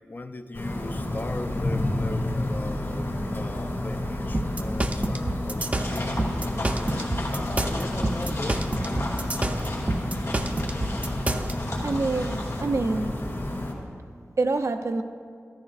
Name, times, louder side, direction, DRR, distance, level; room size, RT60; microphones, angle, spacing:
voice 1, 0.0-7.0 7.3-8.7, left 2 dB, 40° left, 0.5 m, -38 dB
sound 1, 0.5-13.7, left 1 dB, 60° left, 2.8 m, -30 dB
sound 2, 4.3-11.5, right 1 dB, 30° right, 0.6 m, -28 dB
sound 3, 5.8-12.6, left 1 dB, 80° left, 2.5 m, -35 dB
voice 2, 11.8-13.2 14.4-15.0, right 3 dB, 75° right, 0.6 m, -26 dB
14.0 x 13.5 x 2.5 m
wide cardioid pair, 75°, 5 cm